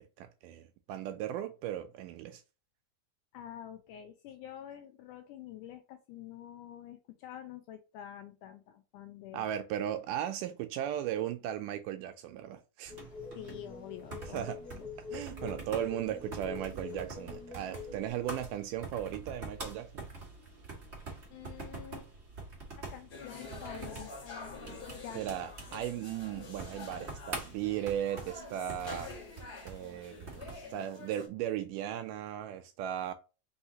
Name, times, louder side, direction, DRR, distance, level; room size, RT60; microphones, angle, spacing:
voice 1, 0.0-2.4 9.3-12.9 14.3-14.6 15.1-20.0 25.1-29.1 29.7-33.1, right 11 dB, 80° right, 2.0 m, -37 dB
voice 2, 3.3-9.4 13.4-14.9 21.3-22.1 22.8-25.2, left 10 dB, 80° left, 1.9 m, -47 dB
sound 1, 12.8-30.7, right 3 dB, 60° right, 0.6 m, -46 dB
sound 2, 12.9-18.1, left 4 dB, 25° left, 0.9 m, -45 dB
sound 3, 23.1-31.3, left 3 dB, 55° left, 1.1 m, -47 dB
5.5 x 3.2 x 2.8 m
omnidirectional pair, 4.0 m